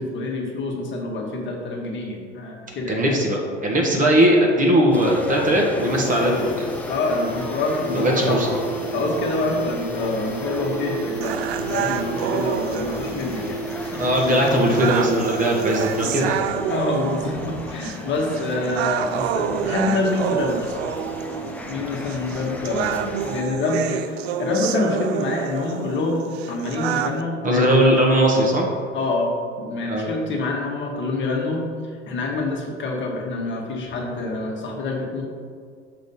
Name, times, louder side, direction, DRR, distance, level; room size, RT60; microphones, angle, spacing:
voice 1, 0.0-3.1 6.9-8.4 8.9-11.4 11.7-14.1 15.9-16.0 16.7-20.8 21.7-27.8 28.9-29.3 29.6-31.6 32.1-35.2, left 2 dB, 30° left, -1 dB, 1.4 m, -26 dB
voice 2, 2.9-6.7 7.9-8.5 13.9-16.4 27.4-28.7 29.9-30.1, equal, 20° right, -1 dB, 1.2 m, -19 dB
sound 1, 4.9-5.0 5.3-5.4 5.6-16.5 16.8-16.9, right 2 dB, 90° left, 0.8 m, -33 dB
sound 2, 4.9-23.4, left 1 dB, 5° left, 0.4 m, -34 dB
sound 3, 11.2-27.2, right 9 dB, 60° right, 0.5 m, -29 dB
6.7 x 3.9 x 5.5 m, 2.1 s
figure-of-eight pair, 80°, 37 cm